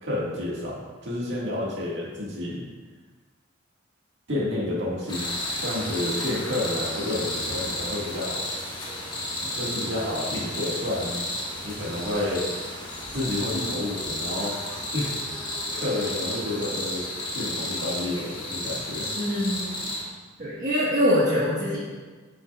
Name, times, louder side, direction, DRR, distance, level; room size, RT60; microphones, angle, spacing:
voice 1, 0.0-2.7 4.3-5.2 5.6-8.4 9.5-11.2 11.6-12.4 13.1-14.5 14.9-15.1 15.7-17.0 17.3-19.1, left 1 dB, 60° right, -5 dB, 1.9 m, -30 dB
sound 1, 5.1-20.0, left 1 dB, 20° left, 1.3 m, -32 dB
voice 2, 19.1-19.9 20.4-21.8, equal, 40° right, -8 dB, 1.4 m, -24 dB
8.6 x 7.0 x 2.4 m, 1.4 s
head